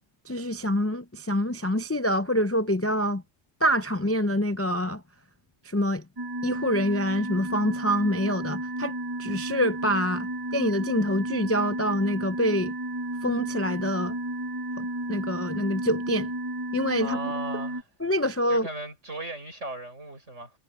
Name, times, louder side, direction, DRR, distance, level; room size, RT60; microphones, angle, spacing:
voice 1, 0.3-3.2 3.6-5.0 5.6-6.0 6.4-12.7 13.2-14.2 14.8-16.3 16.7-17.3 18.0-18.7, equal, 20° left, 0.4 m, -26 dB
sound 1, 6.2-17.8, right 1 dB, 20° right, 0.8 m, -33 dB
voice 2, 17.0-17.8 18.5-20.5, right 2 dB, 75° right, 7.1 m, -36 dB
omnidirectional pair, 1.3 m